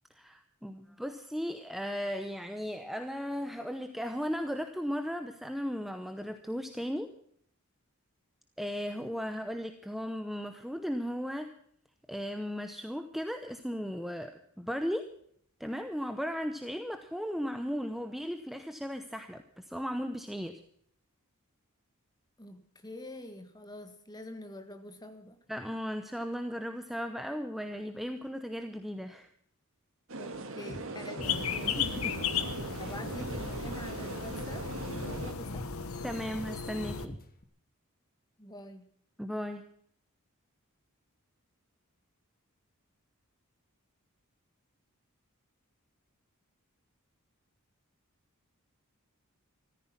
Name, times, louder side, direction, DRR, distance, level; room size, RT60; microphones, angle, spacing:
voice 1, 0.1-7.1 8.6-11.5 12.1-15.1 15.6-20.6 25.5-29.3 31.5-32.2 32.7-32.9 36.0-37.2 39.2-39.6, equal, ahead, 7 dB, 0.8 m, -36 dB
voice 2, 22.4-25.4 30.2-31.6 32.8-34.7 35.0-35.7 38.4-38.9, left 1 dB, 20° left, 8 dB, 1.7 m, -46 dB
sound 1, 30.1-35.3, right 2 dB, 60° right, 1.8 m, -40 dB
sound 2, 30.3-30.4 30.7-30.9 31.2-32.3 32.6-32.8 33.0-34.2 34.5-34.7 34.9-36.1 36.4-36.6 36.8-37.4, equal, 40° left, 1.5 m, -44 dB
sound 3, 31.2-37.1, left 6 dB, 70° left, 1.2 m, -35 dB
14.5 x 14.0 x 5.8 m, 0.64 s
head